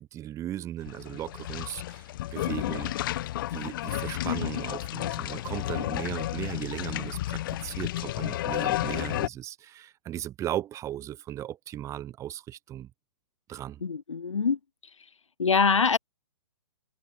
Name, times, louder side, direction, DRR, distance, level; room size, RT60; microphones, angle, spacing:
voice 1, 0.0-2.9 3.5-12.9 13.5-13.8, right 12 dB, 20° right, 2.7 m, -37 dB
sound 1, 0.8-9.3, left 14 dB, 45° left, 1.8 m, -32 dB
voice 2, 13.8-14.6 15.4-16.0, left 5 dB, 85° left, 4.3 m, -24 dB
hypercardioid pair, 140°, 16 cm